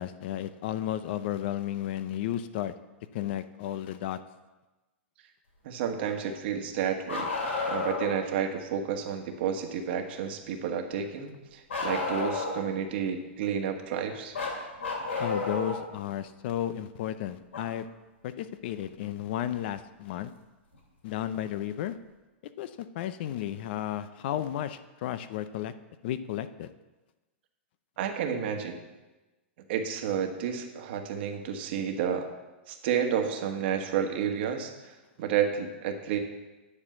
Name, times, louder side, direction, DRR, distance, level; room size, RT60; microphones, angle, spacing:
voice 1, 0.0-2.7 3.1-4.2 15.2-17.9 18.2-20.3 21.0-22.0 22.6-25.7 26.0-26.7, left 11 dB, 55° left, 13 dB, 0.5 m, -33 dB
voice 2, 5.6-7.3 7.7-14.3 28.0-28.8 29.7-32.3 32.7-36.2, right 8 dB, 55° right, 4 dB, 1.3 m, -31 dB
Bark, 7.1-8.2 11.7-12.7 14.3-15.8 17.5-17.6 19.5-19.6 20.7-20.8, left 3 dB, 85° left, 2.8 m, -31 dB
9.8 x 4.4 x 7.6 m, 1.1 s
hypercardioid pair, 140°, 7 cm